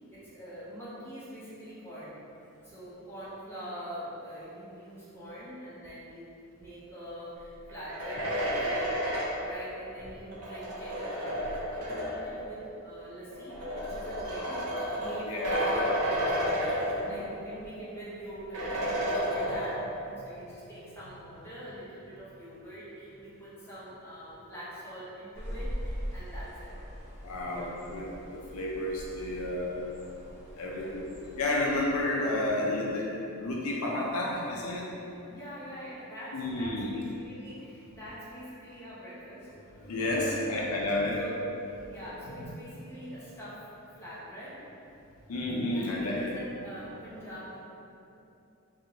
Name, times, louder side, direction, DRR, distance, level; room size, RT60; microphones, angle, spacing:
voice 1, 0.1-2.2 2.6-6.3 6.6-8.9 9.4-26.8 27.4-27.8 30.6-30.9 35.3-39.5 40.1-41.4 41.9-44.7 45.7-47.6, equal, 10° left, -12 dB, 0.9 m, -44 dB
sound 1, 7.7-12.4 13.3-17.5 17.8-17.9 18.5-20.1, equal, 85° right, 0.6 m, -31 dB
voice 2, 15.3-15.6 17.0-17.1 27.2-29.9 30.6-31.0 31.4-33.1 33.4-34.9 36.3-36.9 39.8-41.2 45.3-46.3, left 1 dB, 75° left, -3 dB, 0.4 m, -31 dB
sound 2, 25.3-32.1, equal, 25° right, 1.0 m, -42 dB
3.7 x 2.4 x 2.8 m, 2.8 s
head